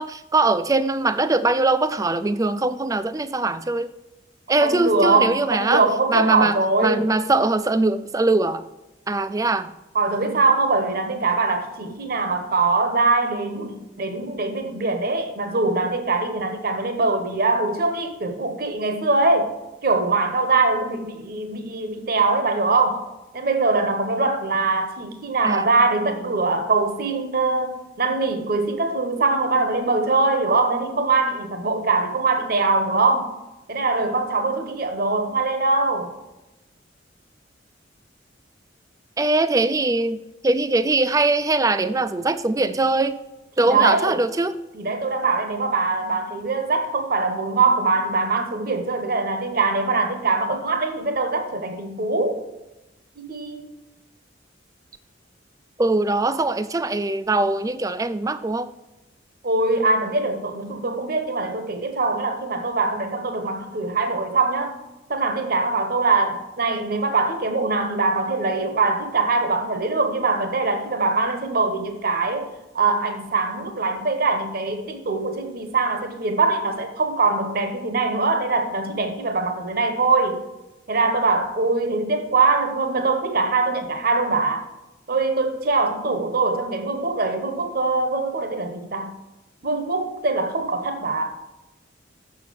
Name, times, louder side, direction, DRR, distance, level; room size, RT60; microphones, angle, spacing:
voice 1, 0.0-3.9 4.5-5.8 6.1-6.5 6.8-8.6 9.1-9.7 25.4-25.7 26.3-26.4 39.2-43.2 43.6-44.6 55.8-58.7, right 2 dB, 20° right, 13 dB, 0.4 m, -21 dB
voice 2, 4.6-7.1 9.9-19.5 19.8-23.0 23.3-33.3 33.7-36.1 43.6-44.2 44.7-52.4 53.2-53.7 59.4-64.8 65.1-72.5 72.7-80.4 80.9-84.7 85.1-89.2 89.6-91.4, right 3 dB, 50° right, 7 dB, 1.0 m, -22 dB
7.0 x 6.7 x 6.8 m, 0.99 s
head